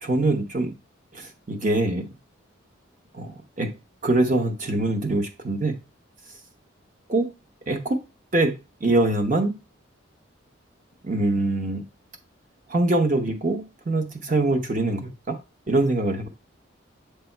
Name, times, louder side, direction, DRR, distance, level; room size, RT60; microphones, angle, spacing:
voice 1, 0.0-0.7 1.1-2.1 3.1-3.7 4.0-5.8 7.1-7.3 7.7-8.0 8.3-9.6 11.0-11.8 12.7-15.4 15.7-16.3, right 2 dB, 40° right, 4 dB, 0.8 m, -24 dB
7.8 x 3.4 x 4.4 m, 0.28 s
head